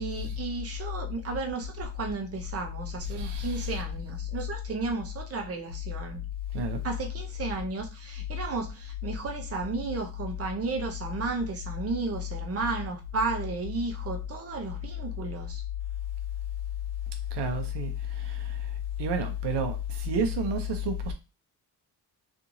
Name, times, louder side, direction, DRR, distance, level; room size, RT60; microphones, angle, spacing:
voice 1, 0.0-6.2 6.8-15.6, right 4 dB, 35° right, 0.7 m, -33 dB
voice 2, 3.1-3.8 6.5-6.8 17.3-18.6 19.0-21.1, equal, 80° right, 0.7 m, -30 dB
2.8 x 2.5 x 2.6 m
cardioid pair, 115°, 41 cm